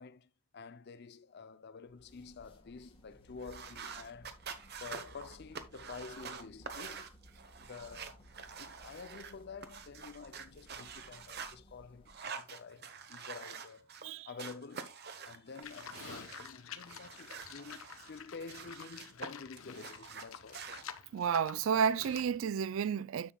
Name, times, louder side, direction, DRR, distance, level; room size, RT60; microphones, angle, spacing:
voice 1, 0.0-4.4 4.8-7.1 7.6-8.2 8.6-13.9 14.3-20.7, left 4 dB, 45° left, 0.5 m, -49 dB
sound 1, 1.9-12.4, equal, 25° left, 1.4 m, -60 dB
sound 2, 3.4-11.5 12.1-14.1 14.4-16.5 16.9-19.3 19.6-20.8, right 6 dB, 45° right, 1.0 m, -47 dB
Livestock farm animals working animals, 15.6-22.4, left 7 dB, 65° left, 0.8 m, -49 dB
voice 2, 21.1-23.3, right 7 dB, 60° right, 0.3 m, -31 dB
10.0 x 7.2 x 2.3 m
head